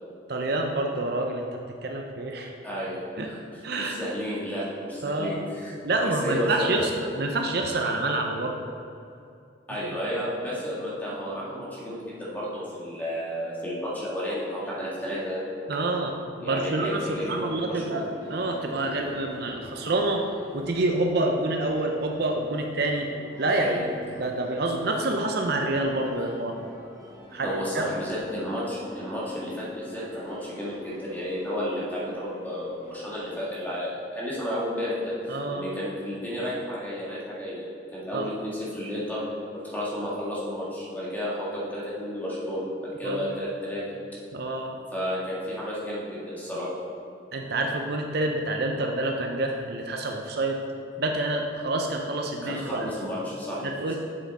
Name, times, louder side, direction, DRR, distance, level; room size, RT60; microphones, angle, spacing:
voice 1, 0.3-1.5 1.8-2.5 3.2-3.3 3.6-4.0 5.0-5.4 5.8-6.8 7.2-8.6 15.7-18.0 18.3-20.3 20.5-23.1 23.4-23.8 24.2-26.5 27.3-27.8 35.3-35.6 38.1-38.2 43.0-43.3 44.3-44.7 47.3-50.6 51.0-52.9 53.6-53.9, right 2 dB, 55° right, 2 dB, 0.6 m, -27 dB
voice 2, 2.6-5.7 6.0-6.8 9.7-15.4 16.4-18.0 23.5-23.8 26.1-26.3 27.4-39.2 39.5-43.9 44.9-46.7 52.4-53.6, equal, 10° left, -7 dB, 1.9 m, -32 dB
sound 1, 17.7-33.6, left 1 dB, 20° right, 1.7 m, -46 dB
7.3 x 7.0 x 4.2 m, 2.6 s
head